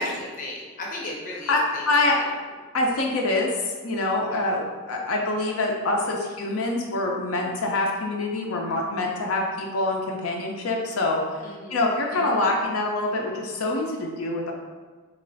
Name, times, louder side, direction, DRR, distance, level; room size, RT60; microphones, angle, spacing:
voice 1, 0.0-2.3 11.4-11.8 12.1-12.5, left 1 dB, 40° left, -2 dB, 0.6 m, -35 dB
voice 2, 1.5-2.2 2.7-3.5 3.8-11.2 11.7-14.5, left 2 dB, 80° left, 0 dB, 0.5 m, -25 dB
3.1 x 2.3 x 3.9 m, 1.4 s
head